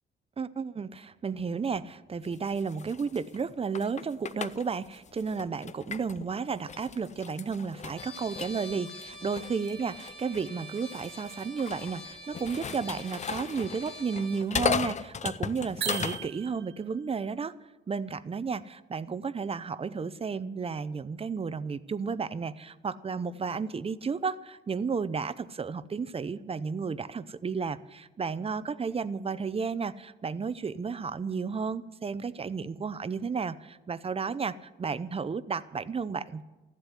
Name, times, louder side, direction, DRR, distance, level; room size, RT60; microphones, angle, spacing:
voice 1, 0.4-17.5 17.9-36.4, right 5 dB, 30° right, 15 dB, 0.7 m, -33 dB
sound 1, 2.2-6.3 6.7-16.3, left 6 dB, 35° left, 0.6 m, -37 dB
Trumpet, 8.0-14.5, equal, 5° left, 3.1 m, -46 dB
sound 2, 15.8-16.9, right 11 dB, 65° right, 0.8 m, -36 dB
14.5 x 7.9 x 10.0 m, 1.1 s
cardioid pair, 90°, 20 cm